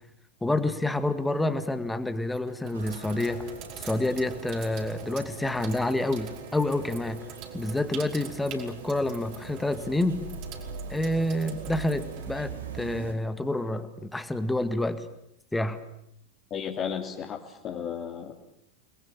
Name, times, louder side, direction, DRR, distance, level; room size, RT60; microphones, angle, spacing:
voice 1, 0.4-3.5 3.8-7.2 7.5-10.2 10.9-15.0 15.5-15.8, left 1 dB, 5° left, 10 dB, 2.1 m, -28 dB
Sink (filling or washing), 2.3-13.1, right 7 dB, 40° right, 5.2 m, -45 dB
sound 1, 2.7-13.1, right 5 dB, 70° right, 4.8 m, -42 dB
voice 2, 16.5-18.3, left 7 dB, 30° left, 1 dB, 2.9 m, -34 dB
29.5 x 21.0 x 8.9 m, 0.77 s
figure-of-eight pair, 90°, 0 cm